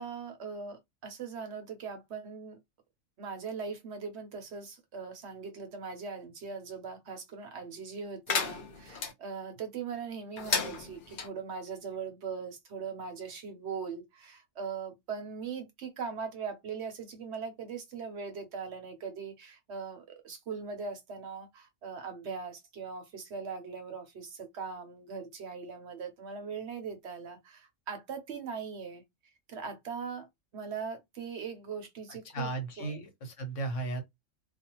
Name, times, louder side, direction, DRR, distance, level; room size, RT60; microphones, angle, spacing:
voice 1, 0.0-2.6 3.2-29.0 29.5-30.3 30.5-32.5 32.8-33.0, right 5 dB, 65° right, 0.9 m, -40 dB
sound 1, 8.3-9.1 10.4-11.3, left 5 dB, 55° left, 0.6 m, -32 dB
voice 2, 32.1-34.0, right 3 dB, 75° left, 1.2 m, -35 dB
2.4 x 2.3 x 2.8 m
omnidirectional pair, 1.3 m